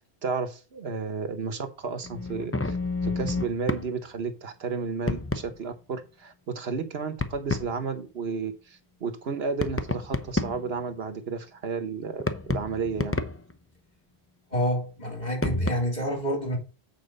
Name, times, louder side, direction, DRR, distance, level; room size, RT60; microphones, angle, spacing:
voice 1, 0.2-2.8 3.0-13.2, right 5 dB, 75° right, 1.4 m, -32 dB
sound 1, 2.0-3.9 5.1-5.5 7.2-7.7 9.6-10.7 12.2-13.5 15.4-15.7, left 2 dB, 15° left, 0.6 m, -29 dB
voice 2, 14.5-16.6, equal, 45° left, 3.2 m, -28 dB
8.9 x 4.6 x 5.4 m
omnidirectional pair, 1.1 m